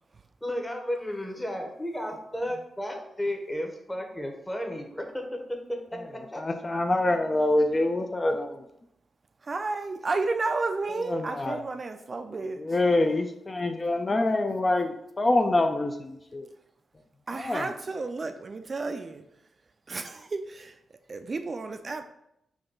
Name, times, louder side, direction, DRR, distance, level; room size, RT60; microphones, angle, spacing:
voice 1, 0.4-5.2 5.7-6.0 6.3-6.4, left 1 dB, 10° left, 3 dB, 0.8 m, -33 dB
voice 2, 5.9-8.7 11.0-11.6 12.6-16.5 17.3-17.7, left 2 dB, 35° left, 5 dB, 0.4 m, -26 dB
voice 3, 9.4-12.6 17.3-19.2 19.9-20.7 21.1-22.0, right 3 dB, 45° right, 7 dB, 0.3 m, -32 dB
3.7 x 2.3 x 3.8 m, 0.80 s
supercardioid pair, 50°, 0 cm